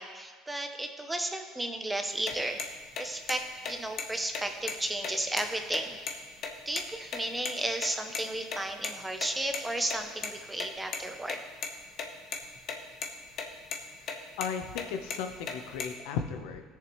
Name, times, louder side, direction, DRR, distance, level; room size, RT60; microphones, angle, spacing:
voice 1, 0.0-2.6 3.0-6.0 6.7-11.4, right 1 dB, 5° right, 6 dB, 0.7 m, -33 dB
sound 1, 2.1-7.2 7.4-7.5 7.8-7.9 8.1-8.2 8.5-8.6 8.8-8.9 9.2-10.3 10.6-11.0 11.3-12.0 12.3-12.7 13.0-13.4 13.7-13.8 14.1-14.5 14.8-15.9, left 6 dB, 40° left, 1.1 m, -35 dB
voice 2, 14.4-16.6, left 7 dB, 90° left, 6 dB, 0.8 m, -35 dB
18.0 x 6.9 x 3.1 m, 1.5 s
cardioid pair, 160°, 0 cm